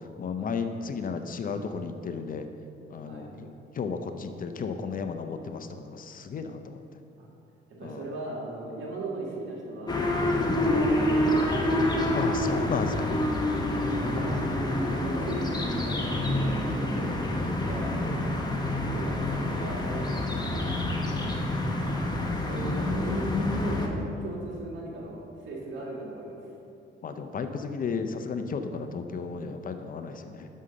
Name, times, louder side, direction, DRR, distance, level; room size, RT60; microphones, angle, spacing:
voice 1, 0.2-2.5 2.9-3.5 3.8-6.8 7.8-8.0 12.1-13.1 27.0-30.5, left 5 dB, 45° left, 8 dB, 0.6 m, -33 dB
voice 2, 7.8-11.4 13.7-14.4 14.9-18.4 18.9-20.2 20.5-20.8 21.7-26.4, right 2 dB, 75° right, -3 dB, 2.0 m, -39 dB
sound 1, 9.9-23.9, left 1 dB, 20° left, 1.1 m, -27 dB
6.3 x 5.6 x 6.7 m, 2.7 s
cardioid pair, 90°, 20 cm